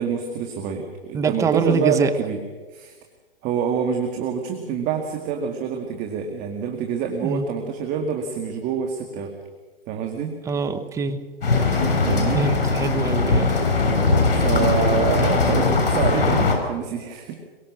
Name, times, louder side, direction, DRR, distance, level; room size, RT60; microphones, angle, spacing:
voice 1, 0.0-2.4 2.7-3.0 3.4-9.3 9.9-10.3 12.1-12.4 14.3-17.4, right 6 dB, 25° right, 4 dB, 2.1 m, -26 dB
voice 2, 1.1-2.1 7.2-7.4 10.4-11.2 12.3-13.5, right 5 dB, 10° right, 9 dB, 1.0 m, -24 dB
sound 1, 11.4-16.5, left 3 dB, 70° left, 7.1 m, -20 dB
23.0 x 22.5 x 6.3 m, 1.3 s
hypercardioid pair, 140°, 30 cm